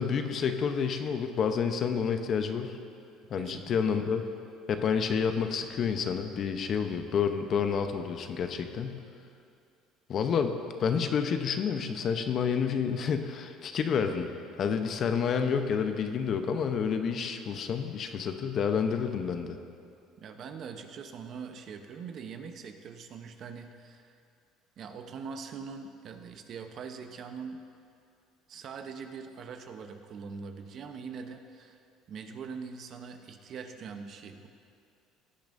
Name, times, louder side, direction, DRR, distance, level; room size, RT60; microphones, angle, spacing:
voice 1, 0.0-2.7 3.3-4.2 4.7-9.0 10.1-14.3 14.6-19.6, left 6 dB, 50° left, 7 dB, 0.8 m, -29 dB
voice 2, 3.3-3.8 20.2-24.1 24.8-27.6 28.5-31.8 32.1-34.5, right 5 dB, 50° right, 6 dB, 0.8 m, -42 dB
16.5 x 10.5 x 2.6 m, 2.4 s
supercardioid pair, 95°, 0 cm